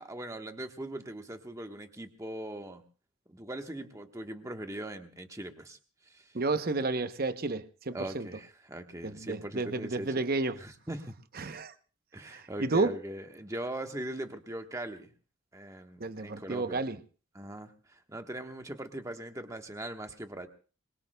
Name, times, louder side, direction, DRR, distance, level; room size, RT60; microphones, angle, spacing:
voice 1, 0.0-2.8 3.3-5.8 6.0-6.3 7.9-11.1 12.1-15.1 15.5-16.8 17.3-20.5, right 1 dB, 15° right, 1.2 m, -40 dB
voice 2, 6.3-8.3 9.0-10.6 11.4-11.7 12.2-13.0 16.0-17.0, right 3 dB, 45° right, 0.8 m, -31 dB
26.5 x 22.0 x 2.3 m
head